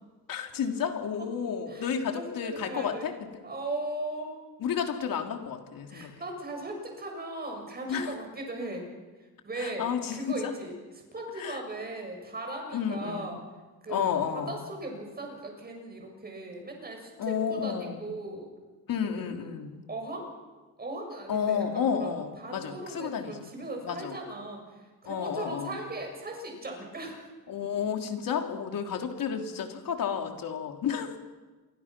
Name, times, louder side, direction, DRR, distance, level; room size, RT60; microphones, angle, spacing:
voice 1, 0.3-3.3 4.6-6.1 7.9-8.1 9.6-10.5 11.4-11.6 12.7-13.4 13.9-14.6 17.2-18.2 18.9-19.8 21.3-23.5 23.8-24.2 25.0-25.8 27.5-31.2, left 7 dB, 60° left, 4 dB, 3.2 m, -31 dB
voice 2, 1.7-3.1 3.4-4.3 5.9-8.9 9.4-9.8 10.1-10.7 11.1-13.4 13.8-18.5 19.1-19.5 19.9-20.3 20.8-22.1 22.4-24.6 25.0-27.2, right 2 dB, 25° right, 2 dB, 7.1 m, -38 dB
28.5 x 24.0 x 6.1 m, 1.3 s
cardioid pair, 140°, 37 cm